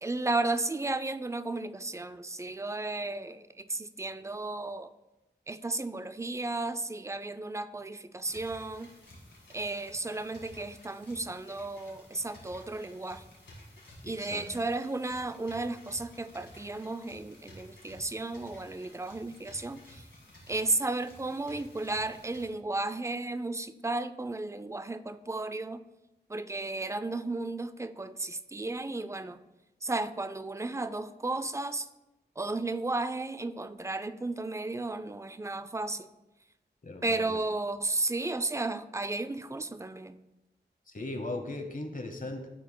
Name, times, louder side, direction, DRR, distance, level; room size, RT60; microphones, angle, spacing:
voice 1, 0.0-4.9 5.5-8.9 9.5-13.2 14.0-20.0 20.5-25.8 26.3-29.4 29.8-31.9 32.4-36.1 37.0-40.2, right 2 dB, 15° right, 12 dB, 0.3 m, -34 dB
sound 1, 8.2-22.5, left 1 dB, 85° left, 1.9 m, -53 dB
voice 2, 14.0-14.4 36.8-37.4 40.9-42.5, left 2 dB, 50° left, 5 dB, 0.9 m, -38 dB
12.0 x 4.6 x 2.2 m, 0.98 s
wide cardioid pair, 60°, 18 cm